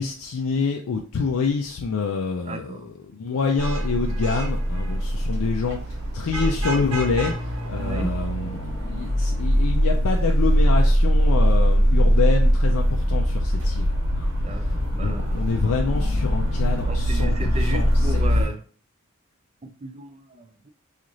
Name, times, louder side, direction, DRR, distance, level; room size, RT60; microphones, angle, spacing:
voice 1, 0.0-5.8 6.1-7.3 7.7-14.3 15.0-18.5, left 4 dB, 85° left, 2 dB, 0.4 m, -27 dB
voice 2, 2.4-2.8 7.8-8.1 14.4-15.4 16.9-18.6 19.8-20.7, right 2 dB, 30° right, 6 dB, 0.4 m, -35 dB
Vehicle horn car horn honking / Traffic noise roadway noise, 3.3-8.6, right 4 dB, 85° right, 1.0 m, -37 dB
sound 1, 3.6-18.4, equal, 70° right, 1.6 m, -22 dB
3.1 x 2.5 x 3.8 m, 0.41 s
head